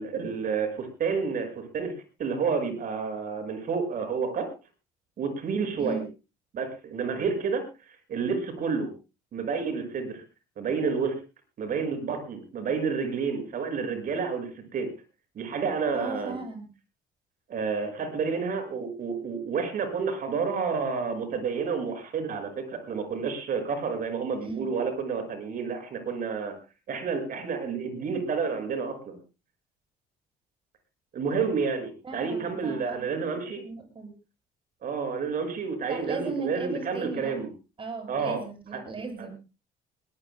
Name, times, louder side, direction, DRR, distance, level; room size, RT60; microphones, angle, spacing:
voice 1, 0.0-1.9 2.2-4.5 5.2-6.0 6.5-7.6 8.1-8.9 9.3-10.2 10.6-11.1 11.6-14.9 15.3-16.4 17.5-26.5 26.9-29.2 31.1-33.6 34.8-37.5 38.1-38.4 38.7-38.8, right 5 dB, 55° right, 7 dB, 6.5 m, -30 dB
voice 2, 15.9-16.7 24.4-24.7 32.0-34.1 35.8-37.3 37.8-39.3, right 3 dB, 30° right, 5 dB, 7.7 m, -37 dB
21.0 x 20.5 x 2.3 m, 0.31 s
cardioid pair, 110°, 17 cm